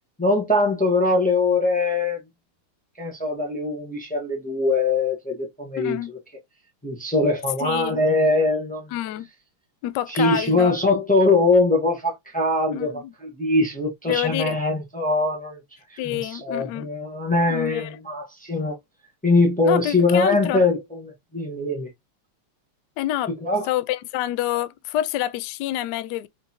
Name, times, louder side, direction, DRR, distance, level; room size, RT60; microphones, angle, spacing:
voice 1, 0.2-2.2 3.0-6.2 6.8-8.9 10.1-15.6 15.9-18.7 19.2-21.9 23.4-23.7, left 2 dB, 15° left, 0.3 m, -22 dB
voice 2, 5.8-6.1 7.6-8.0 8.9-9.3 9.8-10.7 12.7-13.1 14.1-14.6 16.0-16.9 17.5-18.0 19.6-20.6 23.0-23.3 23.6-26.3, left 13 dB, 80° left, 0.9 m, -27 dB
5.2 x 2.8 x 2.8 m
omnidirectional pair, 2.4 m